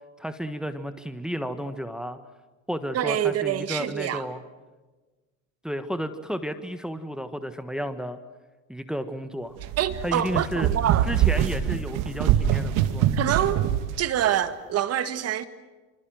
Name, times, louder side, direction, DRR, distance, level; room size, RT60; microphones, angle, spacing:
voice 1, 0.2-2.2 2.7-4.4 5.6-8.2 8.7-9.6 10.0-10.7 11.1-13.1, equal, ahead, 1.4 m, -32 dB
voice 2, 2.9-4.3 9.8-11.1 11.4-11.5 13.1-13.6 14.0-15.4, right 11 dB, 40° right, 1.9 m, -26 dB
sound 1, 9.6-13.9, right 10 dB, 55° right, 2.5 m, -24 dB
27.0 x 26.0 x 7.8 m
supercardioid pair, 115°, 39 cm